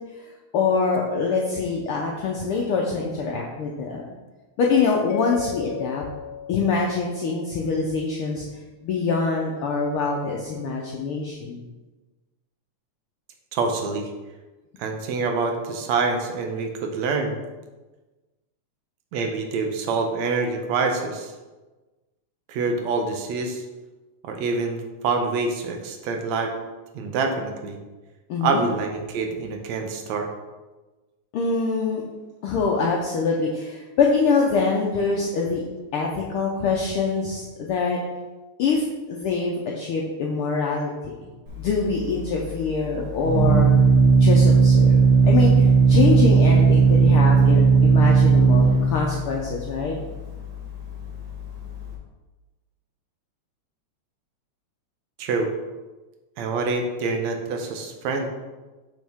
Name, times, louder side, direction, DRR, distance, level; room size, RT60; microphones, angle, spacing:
voice 1, 0.2-4.0 4.6-6.1 6.5-8.4 8.8-11.6 28.3-28.7 31.3-32.0 32.4-35.6 35.9-38.0 38.6-40.9 41.6-43.7 44.2-45.0 45.2-49.9, left 4 dB, 90° left, -1 dB, 1.2 m, -24 dB
Mallet percussion, 5.1-8.1, left 11 dB, 75° left, 1.8 m, -37 dB
voice 2, 13.5-14.1 14.8-17.4 19.1-21.3 22.5-23.6 24.2-26.5 26.9-27.8 28.4-30.3 55.2-55.5 56.4-58.3, right 4 dB, 75° right, 4 dB, 2.0 m, -26 dB
Organ, 41.5-51.9, right 5 dB, 35° right, 1.5 m, -17 dB
6.4 x 6.2 x 3.5 m, 1.2 s
omnidirectional pair, 3.3 m